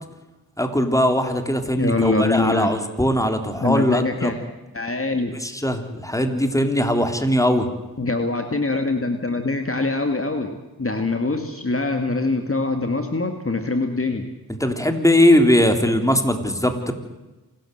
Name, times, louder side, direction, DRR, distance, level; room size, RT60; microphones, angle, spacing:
voice 1, 0.6-4.3 5.4-7.7 14.6-16.9, left 1 dB, 10° left, 6 dB, 3.6 m, -20 dB
voice 2, 1.8-2.7 3.6-4.4 4.7-5.3 8.0-14.3, left 3 dB, 35° left, 6 dB, 2.1 m, -23 dB
27.5 x 13.5 x 8.0 m, 1.1 s
cardioid pair, 40°, 38 cm